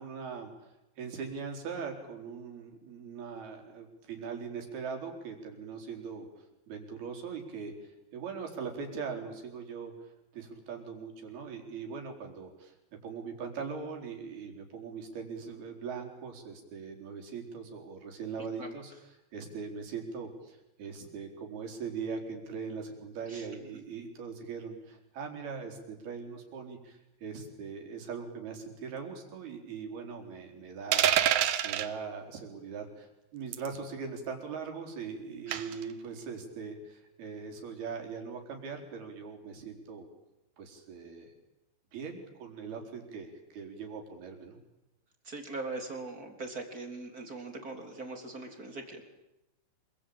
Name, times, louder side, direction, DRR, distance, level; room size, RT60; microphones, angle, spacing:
voice 1, 0.0-6.3 6.7-12.7 13.0-18.9 19.3-31.4 31.6-40.1 40.6-41.3 41.9-44.6, right 5 dB, 55° right, 3 dB, 5.9 m, -41 dB
sound 1, 30.9-31.9 33.5-33.8 35.5-35.8, right 10 dB, 75° right, 2.0 m, -26 dB
voice 2, 35.5-35.8 45.2-49.0, right 3 dB, 20° right, 4 dB, 3.3 m, -41 dB
26.5 x 24.0 x 8.8 m, 0.93 s
omnidirectional pair, 5.3 m